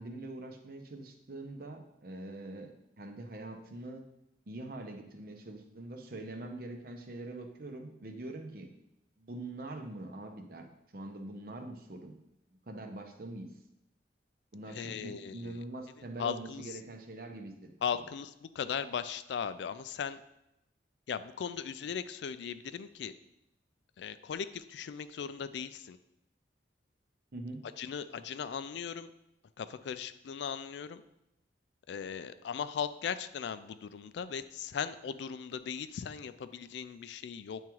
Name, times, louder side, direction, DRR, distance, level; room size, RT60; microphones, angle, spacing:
voice 1, 0.0-4.0 4.5-8.7 9.2-10.7 10.9-12.1 12.7-13.6 14.5-18.0 27.3-27.6, right 2 dB, 50° right, 4 dB, 0.7 m, -44 dB
voice 2, 14.7-15.6 16.2-16.7 17.8-20.2 21.1-23.1 24.0-26.0 27.8-29.1 29.6-31.0 31.9-37.6, left 7 dB, 70° left, 13 dB, 0.3 m, -38 dB
9.0 x 3.6 x 3.0 m, 0.85 s
head